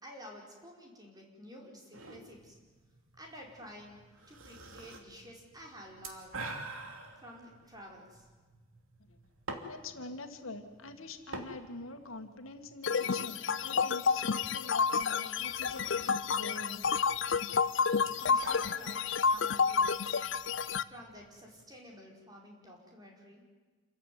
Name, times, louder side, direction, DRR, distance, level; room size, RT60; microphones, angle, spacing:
voice 1, 0.0-2.6 3.2-6.4 7.2-8.3 18.1-20.3 20.8-23.4, equal, 20° right, -1 dB, 5.0 m, -51 dB
sound 1, 1.9-21.6, right 2 dB, 85° right, 2.9 m, -49 dB
voice 2, 9.6-16.8, left 2 dB, 90° left, 6 dB, 2.1 m, -45 dB
sound 2, 12.8-20.8, left 5 dB, 60° left, 0.6 m, -30 dB
28.0 x 15.0 x 9.5 m, 1.4 s
head